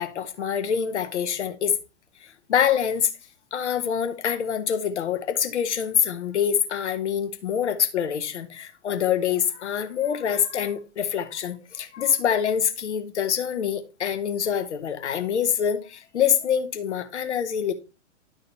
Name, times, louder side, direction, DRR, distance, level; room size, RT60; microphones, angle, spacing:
voice 1, 0.0-1.7 2.5-3.1 3.5-17.7, left 8 dB, 65° left, 1.3 m, -25 dB
11.5 x 4.0 x 4.1 m
figure-of-eight pair, 105°, 37 cm